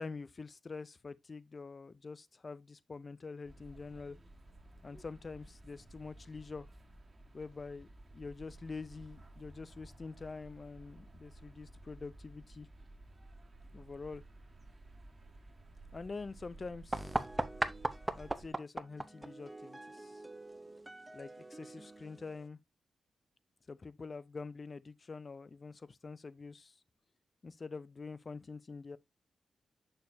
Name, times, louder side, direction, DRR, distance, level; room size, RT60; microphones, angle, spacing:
voice 1, 0.0-4.2 4.8-6.7 7.3-12.7 13.7-14.2 15.9-17.3 18.1-20.2 21.1-22.6 23.7-26.8 27.4-29.0, left 4 dB, 40° left, 0.5 m, -46 dB
sound 1, 3.4-18.5, right 2 dB, 30° right, 1.5 m, -55 dB
sound 2, 16.9-22.5, right 1 dB, 15° right, 0.7 m, -39 dB
6.6 x 6.5 x 2.7 m
cardioid pair, 80°, 0 cm